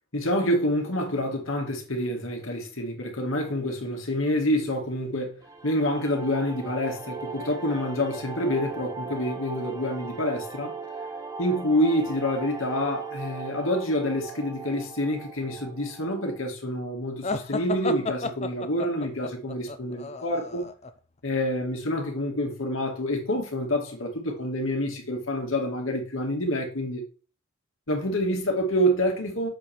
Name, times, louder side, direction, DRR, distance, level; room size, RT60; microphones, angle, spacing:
voice 1, 0.1-10.8 11.4-20.7 21.2-27.0 27.9-29.5, equal, 75° left, 2.2 m, -27 dB
sound 1, 5.4-16.5, right 4 dB, 15° right, 1.0 m, -38 dB
sound 2, 17.2-20.9, left 3 dB, 30° left, 0.6 m, -32 dB
7.4 x 5.3 x 4.5 m
head